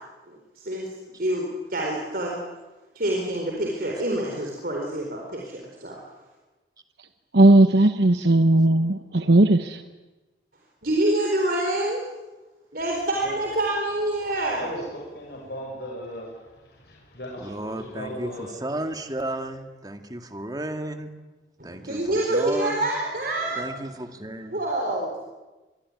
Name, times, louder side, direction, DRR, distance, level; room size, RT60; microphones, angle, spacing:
voice 1, 0.3-2.4 2.9-6.0 10.8-12.1 12.7-14.7 21.6-23.7 24.5-25.1, right 1 dB, 55° right, 0 dB, 4.3 m, -27 dB
voice 2, 7.3-9.8, right 2 dB, 70° right, 8 dB, 1.1 m, -17 dB
voice 3, 14.5-18.6, equal, 60° left, -2 dB, 6.5 m, -37 dB
voice 4, 17.4-21.1 21.6-22.8 23.5-24.6, right 1 dB, 20° right, 6 dB, 2.1 m, -33 dB
25.5 x 22.0 x 9.7 m, 1.2 s
head